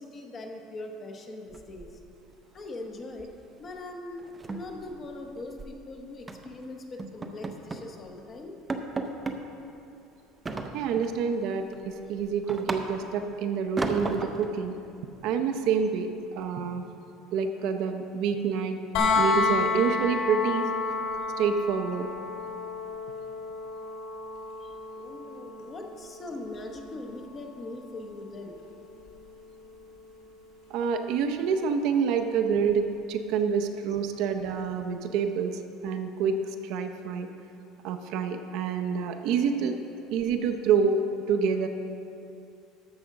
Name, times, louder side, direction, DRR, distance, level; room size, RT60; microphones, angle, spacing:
voice 1, 0.0-1.9 2.5-3.3 3.6-8.6 24.6-28.6, left 2 dB, 20° left, 3 dB, 0.8 m, -41 dB
sound 1, 1.5-2.3 2.6-2.9 3.2-3.4 3.7-3.8 4.2-5.8 6.3-6.5 7.0-7.9 8.3-8.4 8.7-9.4 10.5-11.2 11.6-13.2 13.8-14.5, right 3 dB, 15° right, 0.5 m, -35 dB
voice 2, 10.7-14.8 15.2-16.8 17.3-18.8 19.2-20.7 21.4-22.1 30.7-37.3 37.8-39.8 40.1-41.0 41.3-41.7, right 6 dB, 50° right, 6 dB, 0.6 m, -27 dB
sound 2, 18.9-30.8 32.7-32.8, left 4 dB, 60° left, 2.5 m, -32 dB
13.0 x 5.0 x 6.5 m, 2.7 s
cardioid pair, 175°, 0 cm